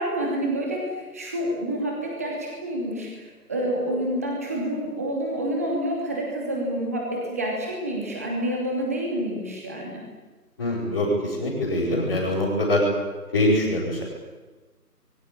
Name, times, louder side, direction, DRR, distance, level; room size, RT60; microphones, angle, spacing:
voice 1, 0.0-10.0, right 1 dB, 10° right, -1 dB, 2.7 m, -28 dB
voice 2, 10.6-12.8 13.3-14.0, left 1 dB, 15° left, -10 dB, 5.2 m, -23 dB
29.5 x 23.0 x 8.7 m, 1.2 s
figure-of-eight pair, 170°, 48 cm